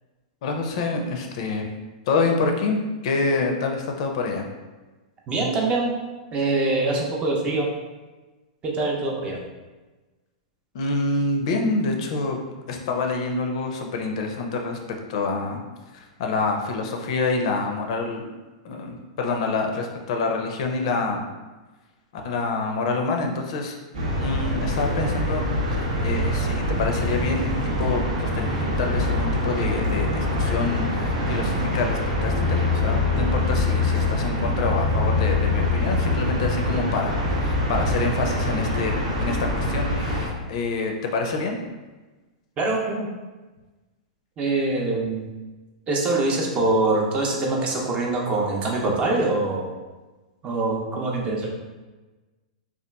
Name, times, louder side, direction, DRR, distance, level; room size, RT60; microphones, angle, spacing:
voice 1, 0.4-1.6 2.1-4.5 10.7-12.4 12.7-15.6 15.9-18.3 18.6-21.3 22.1-23.7 24.2-25.4 25.7-41.6, left 3 dB, 60° left, 3 dB, 0.4 m, -27 dB
voice 2, 5.3-5.9 6.3-7.7 8.6-9.4 42.6-43.1 44.4-45.3 45.9-49.7 50.4-51.5, right 2 dB, 30° right, -1 dB, 0.5 m, -24 dB
sound 1, 23.9-40.3, left 1 dB, 80° right, 0.7 m, -24 dB
2.8 x 2.3 x 2.2 m, 1.2 s
hypercardioid pair, 120°, 4 cm